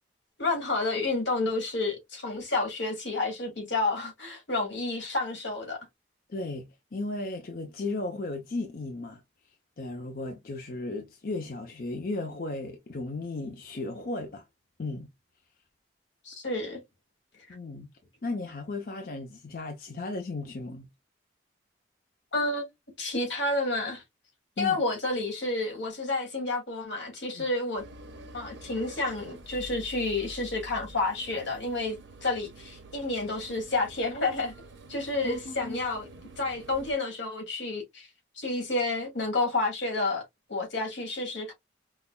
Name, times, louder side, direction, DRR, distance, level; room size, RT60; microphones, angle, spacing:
voice 1, 0.4-5.8 16.2-16.8 22.3-22.7 23.0-24.0 24.6-27.8 28.3-32.0 32.2-34.5 34.9-36.1 36.4-38.1 38.4-40.2 40.5-41.5, left 2 dB, 80° left, 2.0 m, -30 dB
voice 2, 6.3-9.2 9.8-14.5 14.8-15.1 17.5-17.9 18.2-20.9 24.6-24.8 27.3-27.5 35.2-35.8, left 2 dB, 50° left, 0.6 m, -35 dB
sound 1, 27.8-36.9, right 2 dB, 85° right, 1.0 m, -48 dB
5.5 x 2.2 x 2.2 m
head